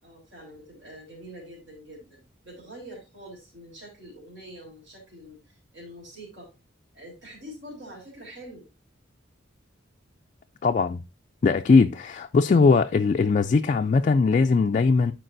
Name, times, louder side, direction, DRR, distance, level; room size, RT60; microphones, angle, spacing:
voice 1, 0.0-6.5 6.9-8.6, equal, 65° right, 3.5 m, -45 dB
voice 2, 10.6-11.0 11.4-15.1, left 4 dB, 40° left, 0.3 m, -20 dB
12.0 x 4.6 x 2.6 m
head